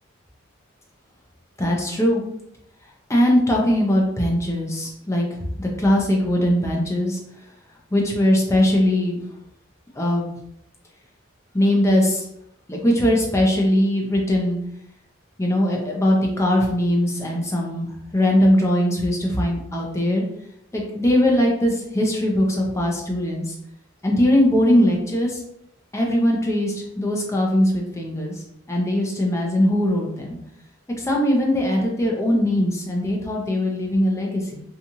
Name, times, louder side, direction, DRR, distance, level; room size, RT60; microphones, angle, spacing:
voice 1, 1.6-2.2 3.1-5.3 5.6-7.2 7.9-9.2 10.0-10.3 11.5-12.2 12.7-14.6 15.4-20.2 20.7-23.5 24.0-25.4 25.9-28.4 28.7-30.4 31.0-34.6, left 1 dB, 15° left, -1 dB, 0.5 m, -20 dB
2.6 x 2.4 x 2.8 m, 0.77 s
head